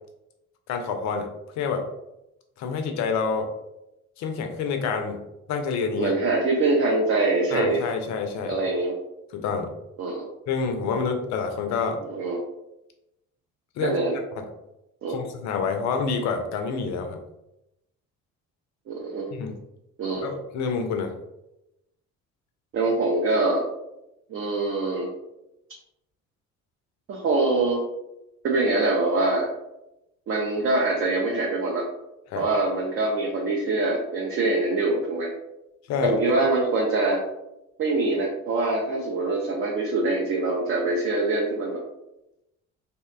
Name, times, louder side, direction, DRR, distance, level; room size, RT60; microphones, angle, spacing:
voice 1, 0.7-1.3 1.6-1.8 2.6-3.5 4.2-5.2 5.5-6.1 7.5-8.5 9.3-9.7 10.5-12.0 13.8-14.0 14.4-14.5 15.1-17.2 19.3-19.5 20.2-21.1 32.3-32.5 35.9-36.2, left 5 dB, 45° left, 5 dB, 0.5 m, -27 dB
voice 2, 6.0-7.8 8.4-9.0 10.0-10.2 12.1-12.4 13.8-14.2 15.0-15.2 18.9-19.4 20.0-20.3 22.7-23.7 24.3-25.1 27.1-27.8 28.4-29.5 30.3-31.8 32.4-35.3 36.0-37.2 37.8-41.8, right 2 dB, 35° right, -2 dB, 0.5 m, -24 dB
2.8 x 2.1 x 2.2 m, 0.89 s
figure-of-eight pair, 50°, 39 cm